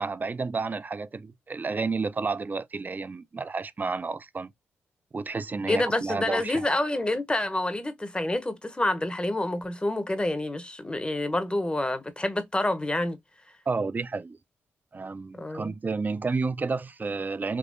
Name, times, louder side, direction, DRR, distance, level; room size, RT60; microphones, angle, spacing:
voice 1, 0.0-4.5 5.1-6.7 13.7-14.4 14.9-17.6, right 4 dB, 35° right, 0.4 m, -31 dB
voice 2, 5.7-13.2 15.4-15.7, left 1 dB, 20° left, 0.8 m, -28 dB
3.6 x 2.7 x 2.5 m
supercardioid pair, 50°, 5 cm